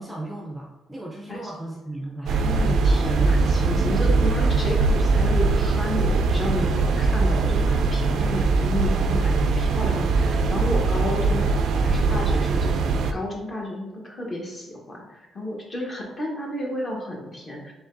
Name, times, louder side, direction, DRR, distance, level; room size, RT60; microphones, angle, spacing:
voice 1, 0.0-2.5, right 1 dB, 5° right, -2 dB, 0.5 m, -36 dB
voice 2, 2.3-12.7 13.1-17.7, left 1 dB, 25° left, -1 dB, 1.1 m, -31 dB
sound 1, 2.3-13.1, right 3 dB, 65° right, 0.3 m, -21 dB
4.9 x 3.6 x 2.6 m, 1.1 s
cardioid pair, 145°, 0 cm